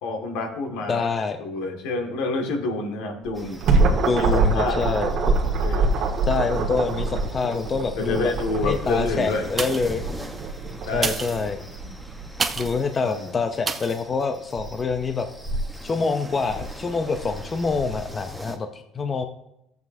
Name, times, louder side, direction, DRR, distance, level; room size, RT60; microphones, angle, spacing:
voice 1, 0.0-1.1 1.4-3.6 4.2-5.0 5.4-5.9 8.0-9.4 10.8-11.1 13.0-13.3, left 3 dB, 75° left, 3 dB, 1.8 m, -28 dB
voice 2, 0.9-1.4 3.9-5.3 6.3-8.3 8.6-10.0 10.9-11.6 12.6-15.3 15.8-19.3, left 4 dB, 25° left, 7 dB, 0.6 m, -26 dB
sound 1, 3.2-12.7, right 3 dB, 55° right, 1.7 m, -25 dB
sound 2, 3.3-18.6, equal, ahead, 1.0 m, -40 dB
sound 3, 9.5-10.1 10.9-12.9 13.6-14.0 14.5-14.6, right 4 dB, 20° right, 0.7 m, -30 dB
14.5 x 7.9 x 2.7 m, 0.82 s
cardioid pair, 130°, 0 cm